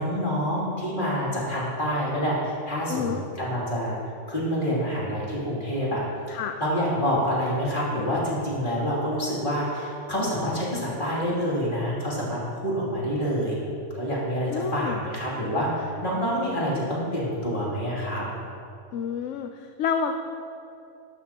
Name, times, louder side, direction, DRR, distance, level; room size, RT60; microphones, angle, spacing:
voice 1, 0.0-4.0 4.3-6.0 6.6-13.6 13.9-18.2, equal, 35° left, -7 dB, 3.1 m, -27 dB
voice 2, 2.9-3.2 6.3-6.5 14.5-15.0 18.9-20.1, left 7 dB, 65° left, 6 dB, 0.8 m, -29 dB
12.5 x 12.5 x 2.9 m, 2.7 s
omnidirectional pair, 1.5 m